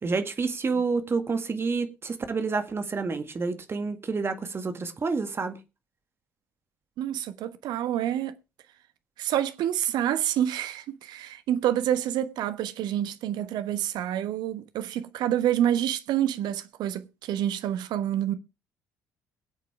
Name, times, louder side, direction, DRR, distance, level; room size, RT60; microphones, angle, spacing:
voice 1, 0.0-5.6, right 4 dB, 30° right, 2.0 m, -29 dB
voice 2, 7.0-8.3 9.2-18.3, right 11 dB, 55° right, 1.2 m, -28 dB
22.0 x 8.2 x 3.5 m
figure-of-eight pair, 50°, 9 cm